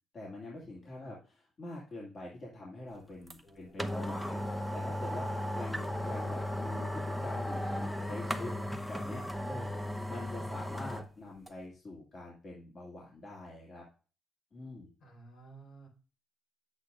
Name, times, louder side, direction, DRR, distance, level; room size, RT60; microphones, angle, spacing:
voice 1, 0.1-8.5 8.8-9.2 9.5-13.8 14.5-14.9, left 2 dB, 45° left, -4 dB, 2.3 m, -45 dB
sound 1, 3.3-3.4 3.8-11.1 11.5-11.6, left 1 dB, ahead, 0.8 m, -36 dB
voice 2, 3.4-4.1 7.6-9.2 10.2-10.6 15.0-15.9, left 1 dB, 65° left, 0 dB, 4.9 m, -51 dB
9.4 x 8.0 x 2.5 m, 0.37 s
cardioid pair, 90°, 0 cm